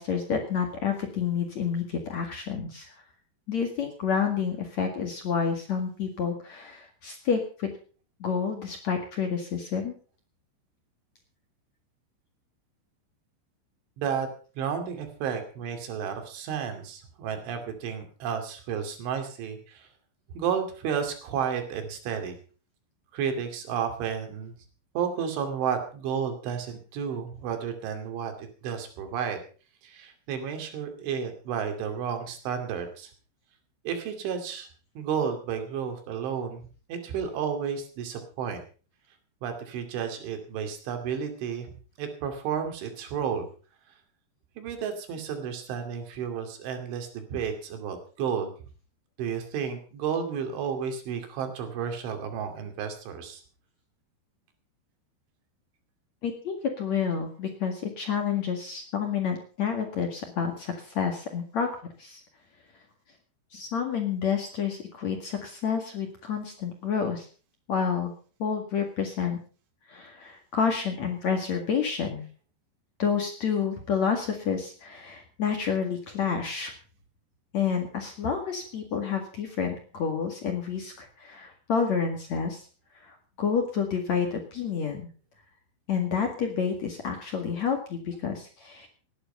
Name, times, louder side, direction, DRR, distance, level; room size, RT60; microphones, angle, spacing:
voice 1, 0.0-2.9 3.5-7.7 8.2-9.9 56.2-61.7 62.0-62.2 63.5-67.3 67.7-68.1 68.4-69.4 69.9-72.3 73.0-76.7 77.5-82.6 83.0-85.1 85.9-88.9, left 6 dB, 50° left, 4 dB, 2.4 m, -29 dB
voice 2, 14.0-14.3 14.6-19.9 20.3-22.4 23.1-24.5 24.9-29.4 29.8-33.1 33.8-34.7 35.0-38.6 39.4-41.7 42.0-43.5 43.9-44.0 44.6-48.5 49.2-53.4, right 7 dB, 80° right, 6 dB, 4.9 m, -32 dB
18.0 x 10.5 x 5.5 m, 0.39 s
omnidirectional pair, 5.4 m